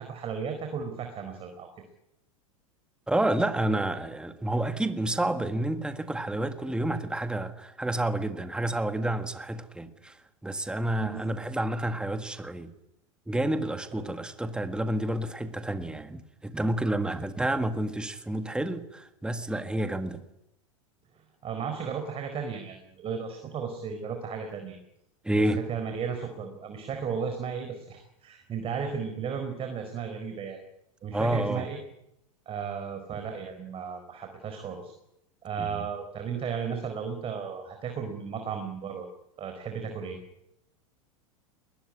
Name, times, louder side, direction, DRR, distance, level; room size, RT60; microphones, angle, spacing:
voice 1, 0.0-1.7 11.0-11.2 13.9-14.0 21.4-24.8 25.5-30.6 31.0-31.8 32.5-34.9 35.4-39.1 39.4-40.2, right 6 dB, 35° right, 4.4 m, -34 dB
voice 2, 3.1-10.2 10.4-12.7 13.3-20.2 25.2-25.6 31.1-31.7 35.6-35.9, right 1 dB, 5° right, 1.7 m, -29 dB
21.0 x 21.0 x 9.9 m
hypercardioid pair, 100°, 18 cm